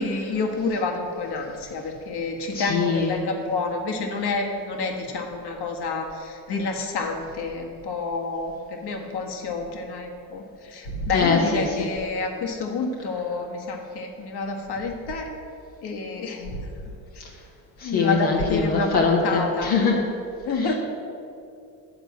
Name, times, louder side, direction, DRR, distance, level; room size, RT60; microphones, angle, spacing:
voice 1, 0.0-15.3 15.8-16.7 17.1-17.2 17.8-19.7 20.5-20.7, left 3 dB, 50° left, 2 dB, 1.6 m, -29 dB
voice 2, 2.5-3.1 11.1-11.6 17.8-20.1 20.6-20.7, left 5 dB, 70° left, -2 dB, 1.3 m, -22 dB
9.6 x 4.5 x 7.4 m, 2.6 s
hypercardioid pair, 55°, 49 cm